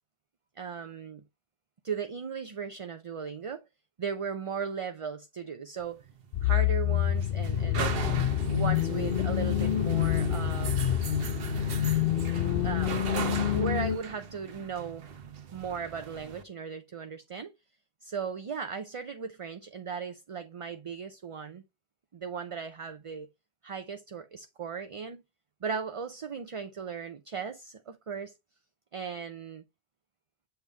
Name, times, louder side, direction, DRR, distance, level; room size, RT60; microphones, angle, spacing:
voice 1, 0.6-1.2 1.8-3.7 4.0-6.1 6.4-8.0 8.5-11.3 12.6-13.1 13.5-15.1 15.5-17.5 18.0-21.6 22.1-23.3 23.6-25.2 25.6-28.3 28.9-29.6, right 6 dB, 40° right, 0.5 m, -37 dB
sound 1, 5.8-16.4, right 6 dB, 70° right, 1.0 m, -38 dB
sound 2, 6.3-14.0, left 11 dB, 65° left, 0.8 m, -27 dB
8.0 x 3.5 x 3.9 m
omnidirectional pair, 1.0 m